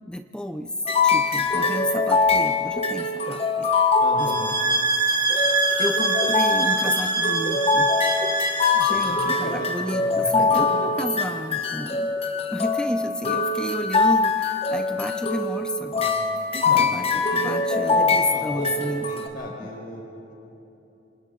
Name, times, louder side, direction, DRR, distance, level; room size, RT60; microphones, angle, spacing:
voice 1, 0.1-0.7 1.0-3.7 4.2-4.3 5.1-5.5 5.8-7.9 8.7-12.2 12.5-16.1 16.7-19.0, equal, 5° left, 7 dB, 0.6 m, -31 dB
sound 1, 0.9-4.9 5.3-19.3, left 4 dB, 35° left, 1.2 m, -23 dB
voice 2, 4.0-4.5 8.9-10.6 16.0-16.9 17.4-20.3, left 1 dB, 50° left, -1 dB, 5.0 m, -36 dB
sound 2, 4.2-9.2, right 3 dB, 25° right, 1.6 m, -24 dB
27.5 x 26.5 x 4.1 m, 2.9 s
head